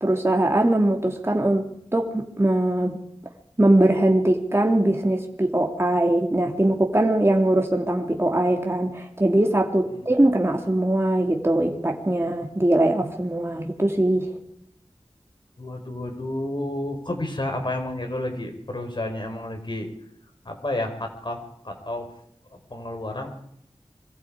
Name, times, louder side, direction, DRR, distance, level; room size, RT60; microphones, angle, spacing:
voice 1, 0.0-3.0 3.6-14.3, right 1 dB, 25° right, 1 dB, 2.7 m, -21 dB
voice 2, 15.6-19.9 20.4-21.4 21.6-22.1 22.5-23.3, left 1 dB, 50° left, 5 dB, 4.9 m, -30 dB
25.5 x 23.5 x 5.0 m, 0.72 s
wide cardioid pair, 55°, 10 cm